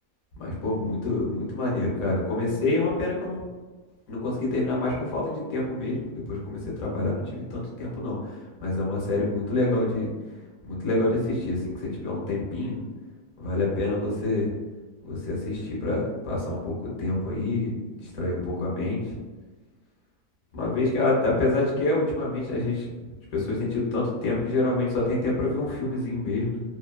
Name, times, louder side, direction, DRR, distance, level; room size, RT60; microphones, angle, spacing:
voice 1, 0.4-3.4 4.1-10.1 10.6-12.8 13.4-14.5 15.0-19.0 20.5-22.9 23.3-26.6, left 2 dB, 65° left, -4 dB, 1.2 m, -27 dB
3.0 x 2.2 x 2.2 m, 1.3 s
omnidirectional pair, 1.7 m